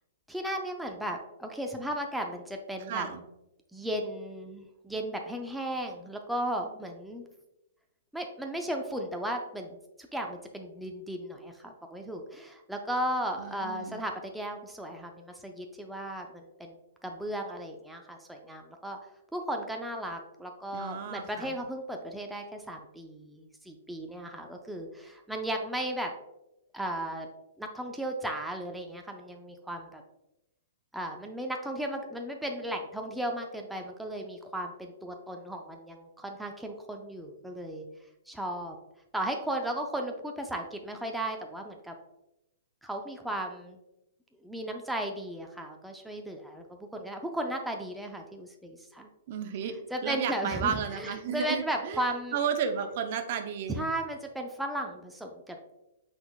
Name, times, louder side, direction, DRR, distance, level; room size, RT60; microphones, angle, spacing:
voice 1, 0.3-3.1 3.7-7.2 8.1-9.8 10.1-16.8 17.0-19.0 19.3-26.1 26.7-27.3 27.6-30.0 30.9-37.9 38.3-38.8 39.1-41.9 42.8-43.8 44.4-49.1 49.9-52.4 53.7-55.6, right 1 dB, 5° right, 2 dB, 0.4 m, -35 dB
voice 2, 2.9-3.2 13.4-14.0 20.7-21.5 49.3-49.7 50.0-53.9, right 7 dB, 50° right, 7 dB, 0.5 m, -33 dB
5.6 x 4.0 x 2.2 m, 0.91 s
hypercardioid pair, 135°, 0 cm